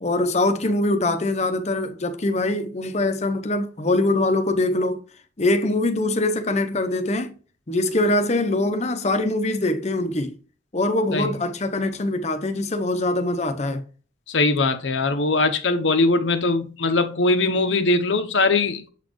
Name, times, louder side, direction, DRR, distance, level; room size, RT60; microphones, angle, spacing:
voice 1, 0.0-5.0 5.4-7.3 7.7-10.4 10.7-13.8, left 2 dB, 35° left, 0.7 m, -23 dB
voice 2, 14.3-18.8, left 3 dB, 75° left, 0.8 m, -21 dB
7.3 x 4.2 x 3.1 m
head